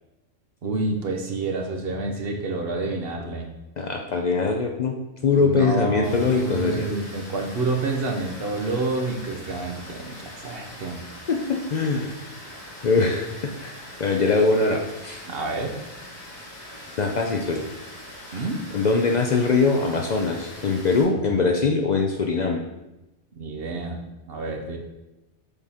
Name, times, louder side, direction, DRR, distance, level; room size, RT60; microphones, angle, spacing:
voice 1, 0.6-3.5 5.3-11.0 15.3-15.7 18.3-18.6 21.2-21.3 23.3-24.8, right 3 dB, 50° right, 2 dB, 0.9 m, -29 dB
voice 2, 3.8-5.0 5.2-6.9 11.3-12.1 12.8-15.2 17.0-17.6 18.7-22.7, left 4 dB, 70° left, 2 dB, 0.4 m, -22 dB
Water, 6.0-21.0, left 1 dB, 85° left, 2.0 m, -42 dB
6.9 x 3.6 x 4.2 m, 0.97 s
omnidirectional pair, 1.4 m